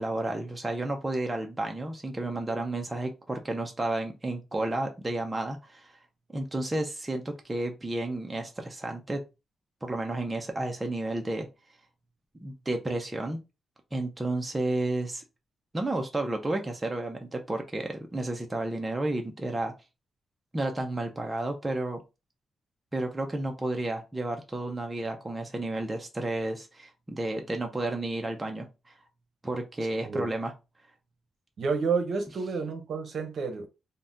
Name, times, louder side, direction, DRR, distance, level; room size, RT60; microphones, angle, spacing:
voice 1, 0.0-5.9 6.3-9.2 9.8-11.5 12.4-13.4 13.9-15.2 15.7-19.7 20.5-22.0 22.9-28.9 29.4-30.5, right 2 dB, 15° right, 0.4 m, -31 dB
voice 2, 31.6-33.7, right 4 dB, 60° right, 0.7 m, -30 dB
2.7 x 2.1 x 3.4 m
wide cardioid pair, 155°, 0 cm